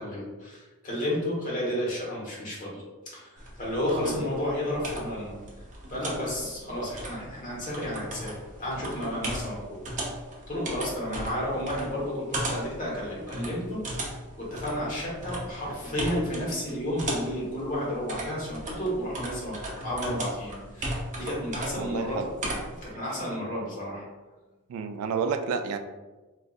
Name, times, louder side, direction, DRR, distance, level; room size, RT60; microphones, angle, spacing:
voice 1, 0.0-5.4 5.9-9.8 10.5-14.1 14.4-22.3 22.8-24.0, left 1 dB, 35° left, -5 dB, 1.1 m, -32 dB
sound 1, 3.4-22.9, right 1 dB, 35° right, 0.6 m, -37 dB
voice 2, 21.8-22.3 24.7-25.8, right 5 dB, 75° right, 12 dB, 0.3 m, -30 dB
3.7 x 2.6 x 2.3 m, 1.2 s
head